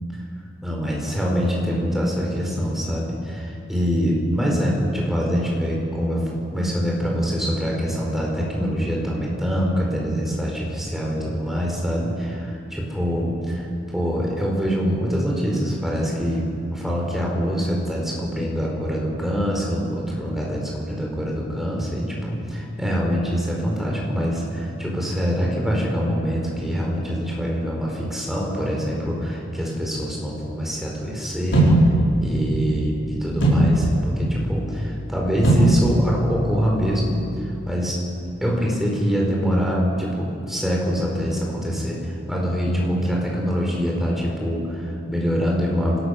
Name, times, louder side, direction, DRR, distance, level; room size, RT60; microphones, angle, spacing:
voice 1, 0.6-6.2 6.5-13.6 13.9-31.8 32.2-38.0 38.4-46.0, equal, ahead, -2 dB, 4.8 m, -24 dB
sound 1, 31.5-37.6, right 1 dB, 75° left, 6.6 m, -22 dB
26.5 x 17.5 x 6.7 m, 2.6 s
head